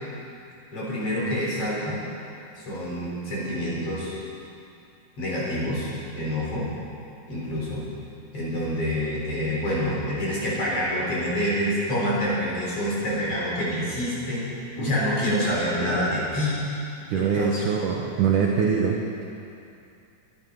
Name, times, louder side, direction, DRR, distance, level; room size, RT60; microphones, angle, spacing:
voice 1, 0.7-2.0 2.6-4.1 5.2-6.7 7.3-7.8 8.3-16.6 17.1-17.8, equal, 35° left, -6 dB, 4.9 m, -27 dB
voice 2, 17.1-19.2, right 6 dB, 70° right, 0 dB, 2.0 m, -24 dB
23.0 x 11.0 x 5.5 m, 2.6 s
omnidirectional pair, 4.9 m